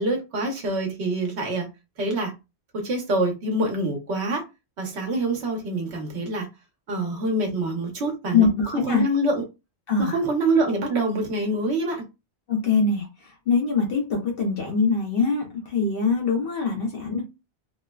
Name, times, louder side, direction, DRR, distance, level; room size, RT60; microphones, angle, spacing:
voice 1, 0.0-1.7 2.0-2.3 2.7-4.4 4.8-6.5 6.9-8.5 8.7-9.4 10.0-12.0, right 2 dB, 75° right, 1.2 m, -25 dB
voice 2, 8.3-9.1 9.9-10.2 12.5-17.2, left 4 dB, 60° left, 0.9 m, -23 dB
3.2 x 2.0 x 2.2 m
omnidirectional pair, 1.1 m